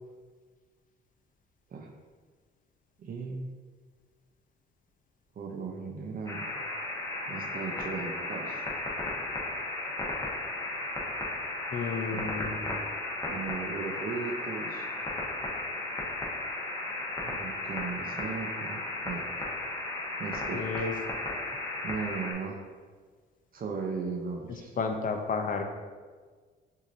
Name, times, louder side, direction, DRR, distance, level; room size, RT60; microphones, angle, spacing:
voice 1, 3.0-3.4 5.4-6.5 7.3-8.7 12.1-12.3 13.3-14.9 17.2-19.4 20.2-20.7 21.8-22.6 23.5-24.8, right 4 dB, 45° right, 1 dB, 0.6 m, -37 dB
sound 1, 6.3-22.3, left 2 dB, 15° left, 1.1 m, -35 dB
voice 2, 11.7-12.6 20.5-20.9 21.2-21.4 24.8-25.6, left 5 dB, 45° left, 5 dB, 0.5 m, -32 dB
6.1 x 2.8 x 2.6 m, 1.5 s
cardioid pair, 90°, 20 cm